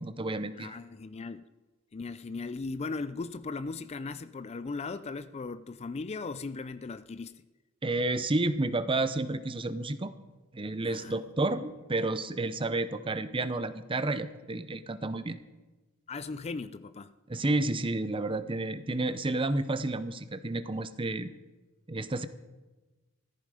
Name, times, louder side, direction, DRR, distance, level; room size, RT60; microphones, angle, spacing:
voice 1, 0.0-0.8 7.8-10.1 10.5-15.4 17.3-21.3 21.9-22.3, right 2 dB, 25° right, 13 dB, 0.7 m, -31 dB
voice 2, 0.5-1.4 1.9-7.4 10.8-11.2 16.1-17.1, left 4 dB, 30° left, 14 dB, 0.4 m, -38 dB
15.0 x 14.0 x 4.9 m, 1.2 s
head